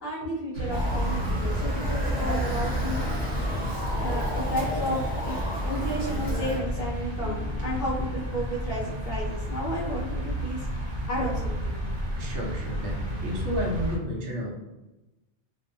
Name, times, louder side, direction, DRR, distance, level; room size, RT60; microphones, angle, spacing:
voice 1, 0.0-3.0 4.0-5.4 5.6-11.9, equal, 55° left, -8 dB, 0.9 m, -32 dB
sound 1, 0.5-14.0, equal, 45° right, 1.0 m, -31 dB
Motor vehicle (road) / Siren, 0.7-6.6, left 1 dB, 10° right, 0.6 m, -31 dB
Piano, 7.2-9.6, left 3 dB, 75° left, 1.1 m, -43 dB
voice 2, 12.2-14.5, equal, 80° right, -1 dB, 0.9 m, -32 dB
2.6 x 2.4 x 2.5 m, 1.0 s
omnidirectional pair, 1.2 m